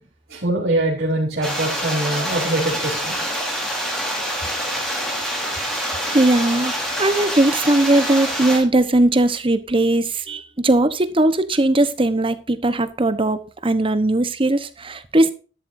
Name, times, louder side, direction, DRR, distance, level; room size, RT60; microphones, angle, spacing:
voice 1, 0.3-3.2, right 1 dB, 55° right, 3.8 m, -23 dB
sound 1, 1.4-8.6, equal, 5° left, 4.2 m, -26 dB
voice 2, 6.1-6.7 7.0-15.3, right 2 dB, 25° right, 1.0 m, -19 dB
12.5 x 11.5 x 2.7 m
head